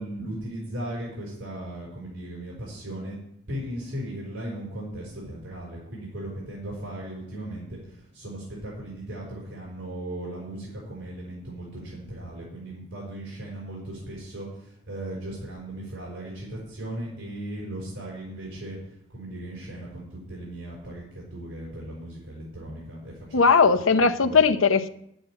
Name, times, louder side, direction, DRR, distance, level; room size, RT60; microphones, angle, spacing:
voice 1, 0.0-3.2 3.5-23.4 23.9-24.4, right 1 dB, 70° right, -4 dB, 4.9 m, -37 dB
voice 2, 23.3-24.9, left 5 dB, 75° left, 9 dB, 0.8 m, -19 dB
10.0 x 9.1 x 7.4 m, 0.74 s
head